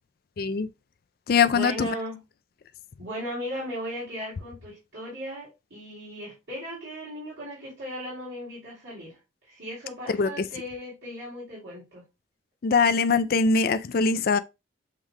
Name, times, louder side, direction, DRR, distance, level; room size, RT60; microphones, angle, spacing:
voice 1, 0.4-0.7 1.3-1.9 10.2-10.3 12.6-14.4, left 5 dB, 55° left, 0.4 m, -22 dB
voice 2, 1.5-2.2 3.0-9.2 9.4-12.0, equal, 75° right, 2.9 m, -37 dB
7.4 x 3.2 x 2.2 m
head